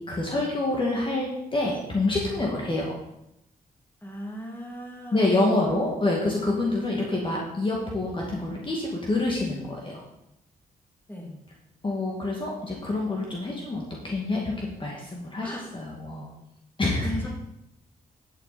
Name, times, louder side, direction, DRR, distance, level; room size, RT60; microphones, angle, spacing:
voice 1, 0.1-3.0 5.1-10.0 11.8-16.3 16.8-17.2, left 2 dB, 30° left, -2 dB, 2.3 m, -27 dB
voice 2, 4.0-5.4 11.1-11.4 15.4-15.7 17.0-17.3, equal, 10° left, -1 dB, 2.9 m, -37 dB
11.0 x 8.6 x 4.4 m, 0.84 s
cardioid pair, 95°, 16 cm